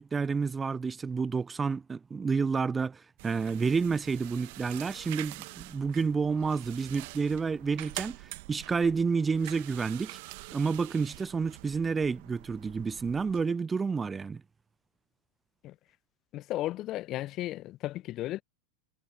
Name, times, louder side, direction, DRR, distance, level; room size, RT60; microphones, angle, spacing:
voice 1, 0.0-10.2 10.5-14.4, right 5 dB, 15° right, 0.9 m, -30 dB
sound 1, 3.2-13.4, right 26 dB, 50° right, 1.6 m, -45 dB
voice 2, 16.3-18.4, left 15 dB, 35° left, 1.3 m, -34 dB
figure-of-eight pair, 90°, 0 cm